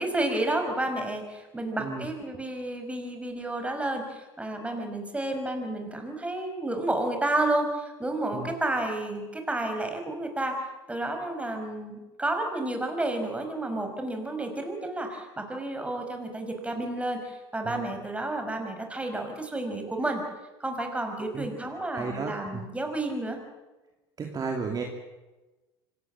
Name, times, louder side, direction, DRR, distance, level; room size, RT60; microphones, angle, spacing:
voice 1, 0.0-10.6 10.9-20.2 20.6-23.4, right 2 dB, 10° right, 4 dB, 5.8 m, -31 dB
voice 2, 21.9-22.6 24.2-24.8, right 4 dB, 30° right, 2 dB, 2.9 m, -33 dB
25.5 x 18.0 x 7.5 m, 1.1 s
hypercardioid pair, 85°, 13 cm